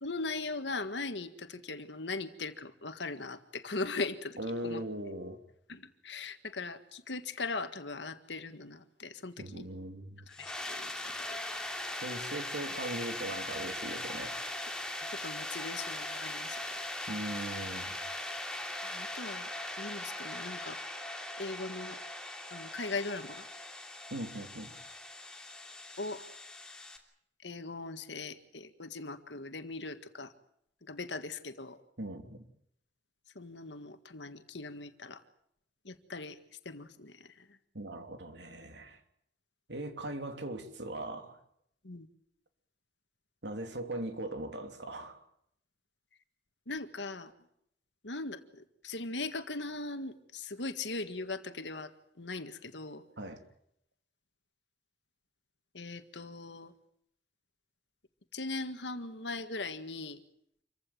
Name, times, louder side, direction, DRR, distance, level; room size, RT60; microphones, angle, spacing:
voice 1, 0.0-4.8 5.7-9.7 10.3-11.4 11.9-12.1 15.2-16.6 18.8-19.5 19.8-20.8 21.4-22.0 22.5-23.5 26.0-26.2 27.4-30.3 30.8-31.8 33.4-35.2 35.8-36.4 36.7-37.6 41.8-42.1 46.7-47.3 48.0-51.9 52.2-53.0 55.7-56.7 58.3-60.2, left 3 dB, 90° left, 1.8 m, -40 dB
voice 2, 4.4-5.4 9.4-10.2 12.0-14.4 17.1-17.9 24.1-24.7 32.0-32.5 37.7-39.0 39.7-41.4 43.4-45.2 53.2-53.4, right 1 dB, 85° right, 3.0 m, -39 dB
sound 1, 10.3-27.0, left 1 dB, 5° left, 3.0 m, -40 dB
27.0 x 15.5 x 9.1 m
head